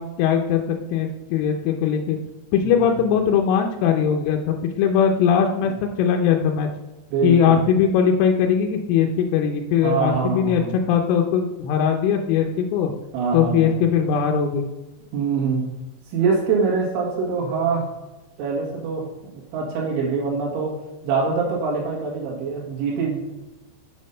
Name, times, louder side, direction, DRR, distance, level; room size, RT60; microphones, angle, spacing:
voice 1, 0.0-2.2 2.5-6.7 7.2-10.6 10.9-12.9 13.3-14.7, left 7 dB, 85° left, 2 dB, 3.2 m, -20 dB
voice 2, 7.1-7.6 9.8-10.7 13.1-13.8 15.1-15.7 16.1-17.9 18.4-20.8 21.0-23.2, right 5 dB, 75° right, -3 dB, 4.1 m, -24 dB
8.3 x 5.2 x 5.5 m, 1.1 s
omnidirectional pair, 5.6 m